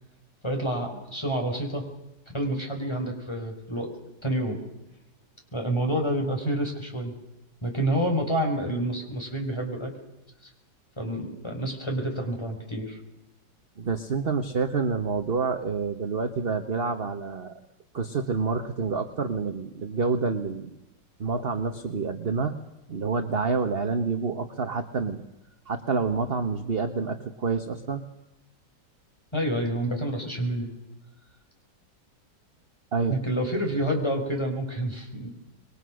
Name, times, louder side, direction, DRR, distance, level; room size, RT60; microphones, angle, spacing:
voice 1, 0.4-1.8 2.3-3.9 4.2-4.6 5.5-7.1 7.6-9.9 11.0-13.0 29.3-30.7 33.1-35.3, right 1 dB, 15° left, 2 dB, 5.2 m, -28 dB
voice 2, 13.8-17.5 17.9-20.8 21.2-22.6 22.9-25.2 25.7-28.0 32.9-33.2, right 4 dB, 35° right, 7 dB, 1.3 m, -28 dB
27.5 x 22.5 x 6.4 m, 0.95 s
omnidirectional pair, 1.9 m